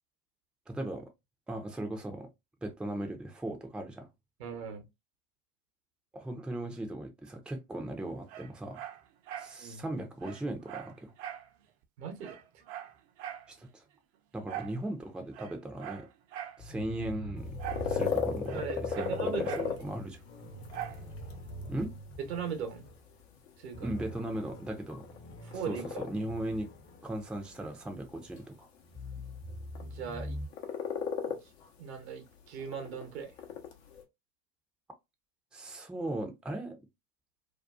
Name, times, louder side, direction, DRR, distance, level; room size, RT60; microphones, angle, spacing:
voice 1, 0.7-1.1 1.5-2.3 2.6-4.1 6.1-8.8 9.4-11.1 13.5-13.8 14.3-16.1 16.6-17.5 17.8-20.2 21.7-21.9 23.8-25.0 25.7-26.7 27.0-28.7 35.5-36.8, right 1 dB, 5° right, 0.5 m, -38 dB
voice 2, 4.4-4.8 9.6-9.8 12.0-12.4 18.5-19.7 22.3-22.9 23.6-23.9 25.4-26.0 29.8-30.4 31.3-31.5 31.8-33.3, right 7 dB, 75° right, 0.9 m, -39 dB
Dog, 8.3-9.6 9.9-10.0 10.2-11.5 11.8-11.9 12.2-13.5 14.5-14.8 15.3-16.6 17.6-17.9 18.2-19.7 20.7-21.0 21.5-21.6, right 11 dB, 50° right, 0.6 m, -42 dB
sound 1, 16.6-23.0 23.3-23.4 23.7-28.4 28.8-30.5, right 1 dB, 40° left, 0.7 m, -44 dB
sound 2, 17.4-34.0, left 6 dB, 70° left, 0.8 m, -38 dB
2.6 x 2.2 x 2.3 m
hypercardioid pair, 75°, 32 cm